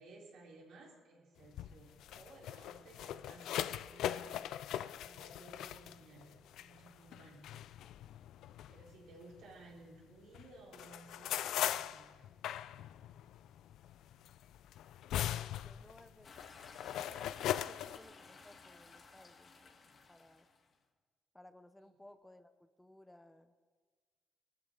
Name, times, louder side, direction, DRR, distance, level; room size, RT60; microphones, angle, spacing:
voice 1, 0.0-7.5 8.7-12.3 21.8-21.9, right 2 dB, 85° right, -4 dB, 4.1 m, -58 dB
sound 1, 1.4-10.0 10.3-18.0, left 11 dB, 80° left, 0.4 m, -40 dB
voice 2, 15.1-16.3 16.8-19.7 20.1-20.5 21.3-23.5, left 1 dB, 10° left, 10 dB, 0.8 m, -60 dB
sound 2, 16.2-20.7, left 4 dB, 50° left, 1.7 m, -56 dB
20.0 x 14.0 x 3.8 m, 1.5 s
cardioid pair, 90°, 0 cm